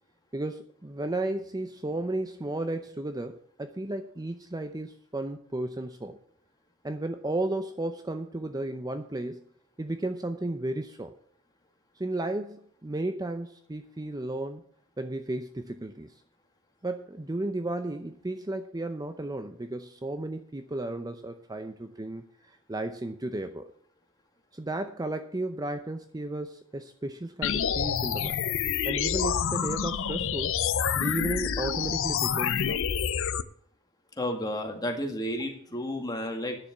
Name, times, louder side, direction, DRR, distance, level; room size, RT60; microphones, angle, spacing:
voice 1, 0.3-6.2 6.8-9.5 9.8-11.1 12.0-14.6 15.0-16.1 16.8-23.7 24.5-28.4 28.8-30.6 31.0-32.8, right 2 dB, 20° right, 8 dB, 0.6 m, -34 dB
sound 1, 27.4-33.4, left 8 dB, 65° left, 0.6 m, -28 dB
voice 2, 34.2-36.6, left 1 dB, 20° left, 3 dB, 2.1 m, -32 dB
10.0 x 6.9 x 8.1 m, 0.64 s
head